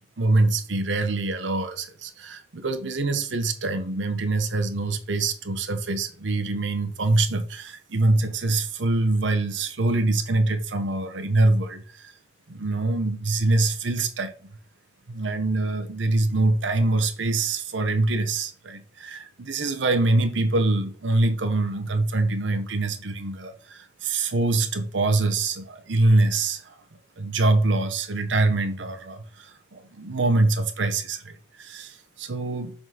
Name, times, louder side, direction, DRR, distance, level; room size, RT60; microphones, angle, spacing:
voice 1, 0.2-12.1 12.5-14.3 15.1-26.7 27.2-31.3 31.6-32.7, right 2 dB, 80° right, 0.8 m, -24 dB
7.4 x 3.8 x 3.9 m
head